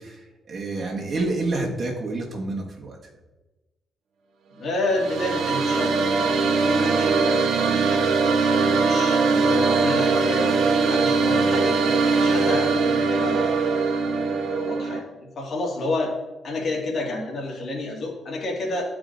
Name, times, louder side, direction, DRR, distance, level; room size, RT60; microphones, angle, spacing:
voice 1, 0.0-3.0, right 2 dB, 50° right, -1 dB, 1.6 m, -28 dB
voice 2, 4.5-10.5 10.8-14.0 14.5-16.2 16.4-18.8, left 2 dB, 60° left, -2 dB, 2.0 m, -30 dB
sound 1, 4.7-15.0, right 4 dB, 80° right, 0.6 m, -21 dB
12.0 x 4.9 x 2.6 m, 1.1 s
cardioid pair, 100°, 0 cm